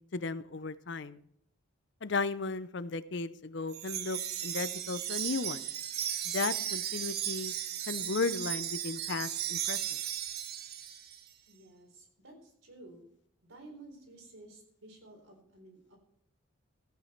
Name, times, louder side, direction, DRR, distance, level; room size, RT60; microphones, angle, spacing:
voice 1, 0.1-1.2 2.0-5.6 6.2-7.5 7.9-9.8, left 4 dB, 55° left, 15 dB, 0.6 m, -35 dB
Wind chime, 3.7-11.2, right 11 dB, 50° right, 0.7 m, -36 dB
voice 2, 11.5-13.0 13.4-16.0, right 2 dB, 75° right, 2 dB, 4.0 m, -53 dB
15.0 x 9.0 x 4.4 m, 0.69 s
head